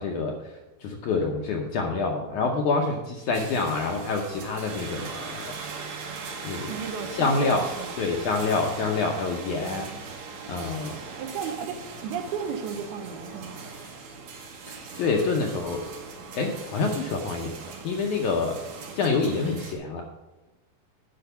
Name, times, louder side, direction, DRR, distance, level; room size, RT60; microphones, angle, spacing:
voice 1, 0.0-5.5 6.4-6.7 7.1-7.7 8.0-9.9 10.5-11.0 14.7-15.9 16.3-17.6 17.8-18.6 19.0-20.0, left 4 dB, 75° left, 1 dB, 1.8 m, -27 dB
sound 1, 3.3-19.7, right 4 dB, 60° right, 2.2 m, -40 dB
voice 2, 6.7-8.0 9.6-10.0 11.2-13.6, right 6 dB, 80° right, 5 dB, 2.9 m, -34 dB
10.5 x 5.1 x 7.0 m, 1.0 s
omnidirectional pair, 4.4 m